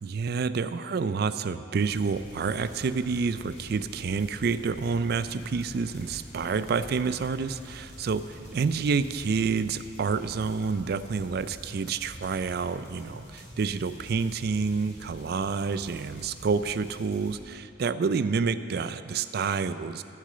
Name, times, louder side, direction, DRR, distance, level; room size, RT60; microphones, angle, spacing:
voice 1, 0.0-20.0, right 5 dB, 60° right, 13 dB, 0.4 m, -28 dB
sound 1, 1.8-17.4, equal, 40° left, 3.2 m, -46 dB
13.5 x 6.4 x 6.7 m, 2.7 s
head